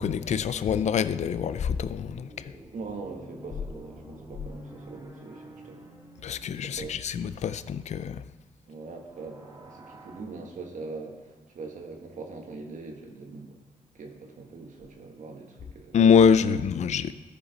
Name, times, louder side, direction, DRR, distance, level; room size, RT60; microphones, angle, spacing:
voice 1, 0.0-2.5 6.2-8.2 15.9-17.1, left 7 dB, 55° left, 0.4 m, -24 dB
sound 1, 1.9-7.9 9.0-10.2, right 1 dB, 20° right, 1.7 m, -48 dB
voice 2, 2.7-5.9 6.6-7.0 8.7-13.6 13.9-16.0 16.5-16.6, right 4 dB, 65° right, 1.4 m, -42 dB
13.5 x 5.1 x 4.0 m
cardioid pair, 75°, 14 cm